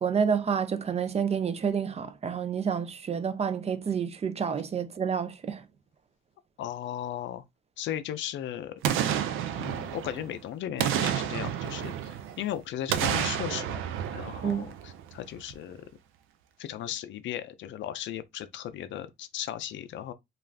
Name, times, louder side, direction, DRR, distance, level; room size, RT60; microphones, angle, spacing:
voice 1, 0.0-5.6 14.4-14.7, right 7 dB, 30° right, 0.4 m, -29 dB
voice 2, 6.6-7.4 7.8-8.8 9.6-13.8 14.1-15.8 16.6-20.1, left 11 dB, 70° left, 0.5 m, -36 dB
Boom, 8.8-10.3 10.8-12.4 12.9-15.1 15.5-15.6, right 9 dB, 90° right, 0.4 m, -30 dB
2.4 x 2.3 x 3.3 m
cardioid pair, 90°, 20 cm